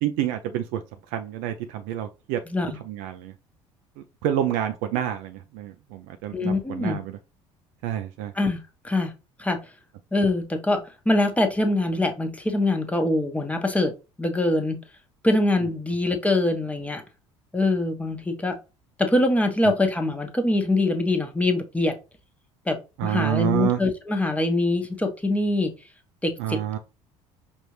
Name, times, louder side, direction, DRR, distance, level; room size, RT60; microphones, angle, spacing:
voice 1, 0.0-0.8 1.1-2.4 2.8-3.3 4.2-7.1 7.8-8.3 19.6-19.7 23.0-23.8 26.4-26.8, right 11 dB, 65° right, 0.4 m, -28 dB
voice 2, 2.5-2.8 6.3-7.0 8.3-9.1 9.4-9.6 10.1-13.9 14.2-14.8 15.2-17.0 17.5-18.6 19.0-21.9 22.7-25.7 26.2-26.8, left 2 dB, 10° left, 1.0 m, -24 dB
5.3 x 2.5 x 3.1 m
hypercardioid pair, 60°, 16 cm